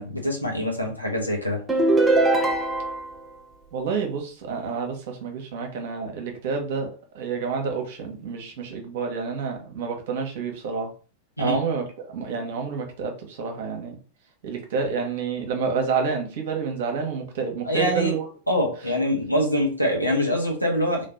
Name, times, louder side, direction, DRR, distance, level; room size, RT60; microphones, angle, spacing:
voice 1, 0.0-1.6 11.4-11.6 17.6-18.1 18.5-21.1, left 1 dB, 90° left, -1 dB, 1.3 m, -24 dB
sound 1, 1.7-3.2, right 2 dB, 15° right, 0.7 m, -21 dB
voice 2, 3.7-10.9 11.4-14.0 14.4-18.2, right 5 dB, 55° right, 3 dB, 1.2 m, -29 dB
3.6 x 3.3 x 4.0 m, 0.38 s
figure-of-eight pair, 90°, 0 cm